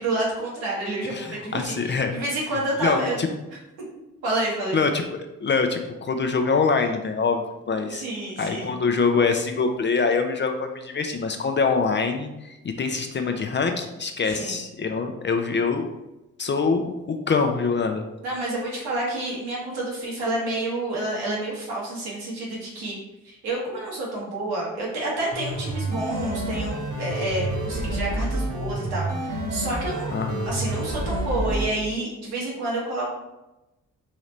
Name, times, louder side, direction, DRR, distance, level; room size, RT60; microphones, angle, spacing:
voice 1, 0.0-3.1 4.2-4.8 7.9-8.8 14.2-14.6 18.2-23.0 23.2-30.2 30.4-33.1, right 2 dB, 80° right, -4 dB, 1.5 m, -29 dB
voice 2, 1.1-2.1 2.8-3.3 4.7-8.0 8.4-15.9 16.4-18.0 30.1-30.5, left 4 dB, 30° left, 5 dB, 0.5 m, -24 dB
sound 1, 25.3-31.7, right 1 dB, 45° right, 1.3 m, -28 dB
3.8 x 2.9 x 3.2 m, 0.98 s
hypercardioid pair, 45°, 39 cm